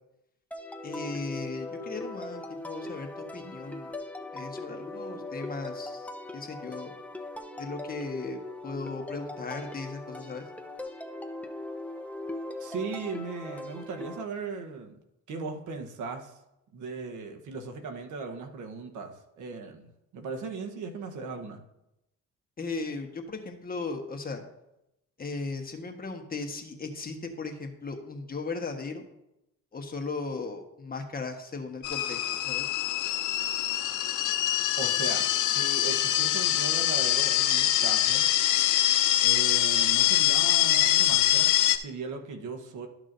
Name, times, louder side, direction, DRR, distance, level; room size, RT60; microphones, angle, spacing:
sound 1, 0.5-14.2, left 2 dB, 5° left, 0.7 m, -40 dB
voice 1, 0.8-3.9 4.3-6.9 7.6-10.5 22.6-24.4 25.2-29.0 29.7-32.7, left 3 dB, 30° left, 3 dB, 1.3 m, -37 dB
voice 2, 12.6-15.0 15.3-16.3 16.7-21.6 34.8-38.2 39.2-41.5 41.8-42.9, right 4 dB, 85° right, 4 dB, 1.1 m, -37 dB
sound 2, 31.8-41.8, left 13 dB, 85° left, 0.6 m, -24 dB
12.5 x 6.1 x 2.6 m, 0.88 s
cardioid pair, 90°, 30 cm